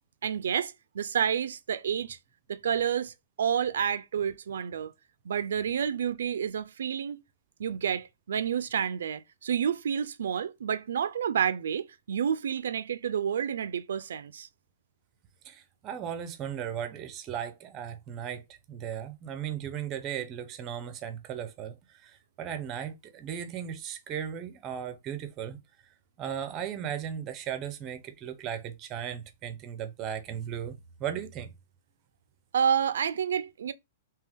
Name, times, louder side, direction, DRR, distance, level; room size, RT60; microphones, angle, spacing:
voice 1, 0.2-2.2 2.5-4.9 5.3-7.2 7.6-14.5 32.5-33.7, right 8 dB, 80° right, 0.3 m, -29 dB
voice 2, 15.4-18.4 18.7-25.6 26.2-31.5, right 9 dB, 20° right, 0.5 m, -36 dB
3.5 x 2.8 x 3.4 m
hypercardioid pair, 170°, 0 cm